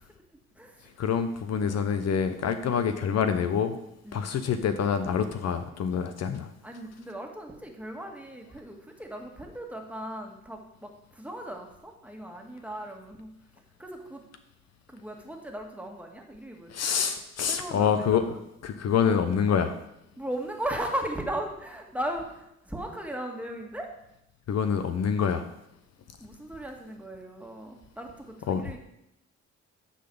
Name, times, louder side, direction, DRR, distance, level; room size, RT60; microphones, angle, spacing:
voice 1, 0.0-0.9 1.6-1.7 2.6-2.7 4.0-4.4 6.6-13.3 13.8-14.2 14.9-16.9 17.5-18.4 20.2-23.9 26.2-28.8, right 1 dB, 5° right, 1 dB, 1.7 m, -37 dB
voice 2, 1.0-3.8 4.1-6.5 16.7-18.2 18.6-19.7 24.5-25.5 28.5-28.6, left 7 dB, 60° left, 8 dB, 0.8 m, -26 dB
10.0 x 3.9 x 7.0 m, 0.81 s
cardioid pair, 90°, 30 cm